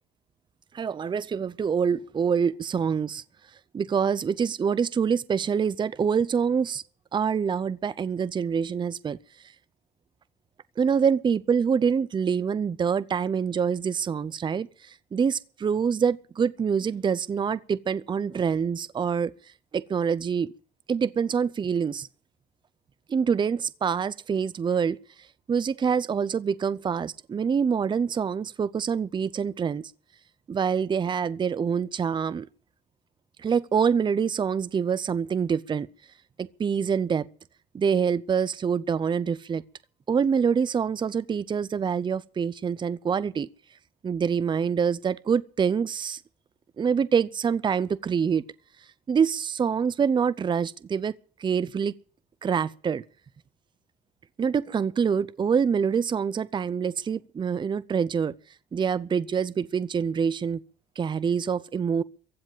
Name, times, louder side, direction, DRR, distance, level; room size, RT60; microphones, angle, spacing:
voice 1, 0.7-3.2 3.7-6.8 7.1-9.2 10.8-19.3 19.7-20.5 20.9-22.1 23.1-25.0 25.5-29.9 30.5-32.5 33.4-35.9 36.4-37.3 37.7-39.6 40.1-43.5 44.0-46.2 46.8-48.4 49.1-51.1 51.4-51.9 52.4-53.0 54.4-58.3 58.7-60.6 61.0-62.0, right 6 dB, 25° right, 0.6 m, -25 dB
15.5 x 7.9 x 9.0 m
cardioid pair, 110°, 17 cm